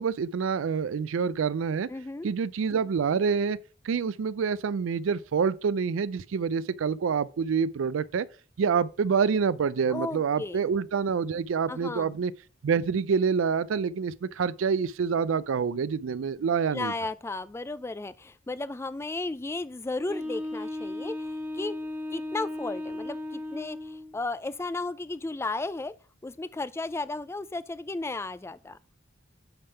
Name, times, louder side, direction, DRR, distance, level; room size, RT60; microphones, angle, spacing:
voice 1, 0.0-1.9 2.2-3.6 3.8-8.3 8.6-12.3 12.6-16.9, right 6 dB, 70° right, 0.4 m, -27 dB
voice 2, 1.9-2.3 9.9-10.7 11.7-12.2 16.7-21.8 22.1-25.9 26.2-28.8, left 2 dB, 15° left, 0.3 m, -34 dB
Wind instrument woodwind instrument, 20.1-24.2, left 1 dB, 10° right, 1.4 m, -35 dB
8.8 x 3.5 x 5.6 m
head